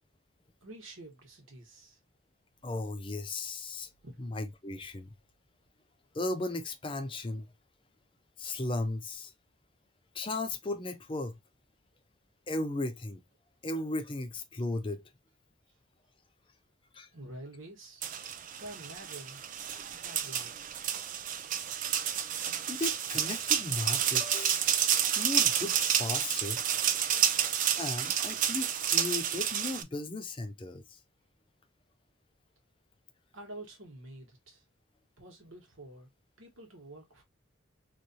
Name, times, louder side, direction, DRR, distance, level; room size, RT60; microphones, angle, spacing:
voice 1, 0.6-2.0 4.0-4.2 17.1-18.0 18.6-19.4 20.0-20.8 33.3-34.6 35.2-36.1 36.4-37.2, right 1 dB, 80° right, 1.3 m, -48 dB
voice 2, 2.6-3.9 4.2-5.1 6.1-7.5 8.4-9.3 10.1-11.4 12.5-13.2 13.6-15.0 16.9-17.1 22.7-24.6 25.2-26.6 27.8-31.0, left 2 dB, 25° left, 0.4 m, -36 dB
sound 1, 18.0-29.8, right 9 dB, 40° right, 0.3 m, -30 dB
3.2 x 2.5 x 2.7 m
head